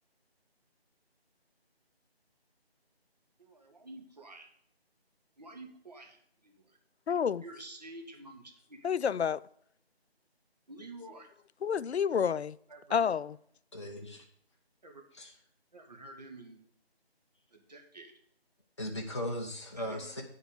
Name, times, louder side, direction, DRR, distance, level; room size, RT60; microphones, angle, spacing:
voice 1, 3.4-4.5 5.4-6.2 6.4-6.5 7.4-8.9 10.7-11.3 12.7-13.0 14.8-15.0 15.7-16.6 17.5-18.1 19.8-20.1, right 2 dB, 40° right, 1.6 m, -49 dB
voice 2, 7.1-7.4 8.8-9.4 11.6-12.6 12.9-13.4, left 7 dB, 85° left, 0.5 m, -29 dB
voice 3, 13.7-14.2 15.1-15.3 18.8-20.2, left 1 dB, 30° left, 0.8 m, -38 dB
10.0 x 4.6 x 6.4 m
figure-of-eight pair, 165°, 32 cm